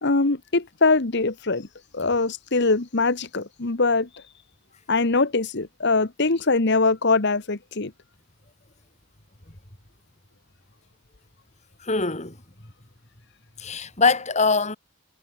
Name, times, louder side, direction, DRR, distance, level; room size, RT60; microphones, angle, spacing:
voice 1, 0.0-1.7 1.9-4.2 4.9-7.9, left 3 dB, 55° left, 1.3 m, -22 dB
voice 2, 11.8-12.4 13.6-14.8, left 4 dB, 30° left, 3.4 m, -22 dB
head